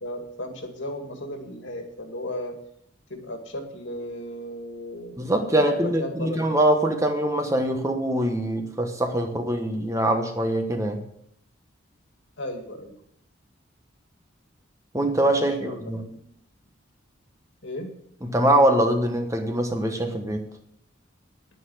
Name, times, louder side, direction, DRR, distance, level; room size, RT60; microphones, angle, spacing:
voice 1, 0.0-2.6 3.1-6.6 12.4-12.9 15.2-16.2 17.6-17.9, left 1 dB, 65° left, 4 dB, 2.1 m, -35 dB
voice 2, 5.2-11.0 14.9-16.0 18.3-20.5, right 1 dB, 15° right, 5 dB, 1.1 m, -23 dB
9.8 x 9.6 x 6.3 m, 0.71 s
head